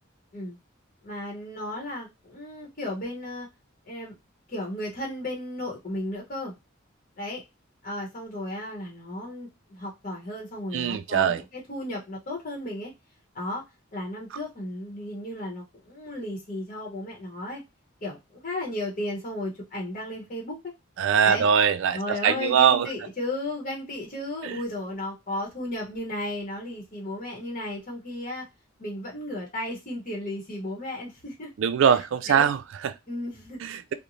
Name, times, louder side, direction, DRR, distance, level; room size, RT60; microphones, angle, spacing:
voice 1, 1.0-3.5 3.8-4.1 4.5-6.5 7.2-7.4 7.8-12.9 13.3-13.6 13.9-17.6 18.0-20.6 21.2-21.4 21.9-28.5 28.8-31.5 31.9-32.0 32.3-32.5 33.1-33.6, left 1 dB, 40° left, 0.9 m, -34 dB
voice 2, 10.7-11.4 21.0-22.9 24.4-24.6 31.6-32.9 33.6-33.9, right 7 dB, 65° right, 0.3 m, -22 dB
2.5 x 2.0 x 3.0 m
head